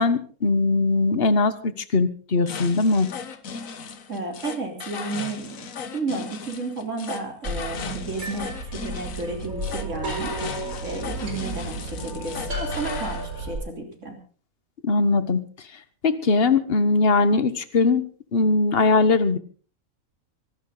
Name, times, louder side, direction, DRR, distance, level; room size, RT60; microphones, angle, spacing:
voice 1, 0.0-3.1 14.8-15.4 16.0-18.0 18.3-19.4, left 3 dB, 45° left, 13 dB, 1.4 m, -20 dB
sound 1, 2.5-13.3, left 6 dB, 70° left, 1.6 m, -37 dB
voice 2, 4.1-5.7 5.9-10.3 10.8-14.2, right 3 dB, 60° right, 4 dB, 3.9 m, -32 dB
sound 2, 7.4-13.6, right 1 dB, 75° right, 5.7 m, -32 dB
25.0 x 11.5 x 3.9 m, 0.40 s
omnidirectional pair, 1.5 m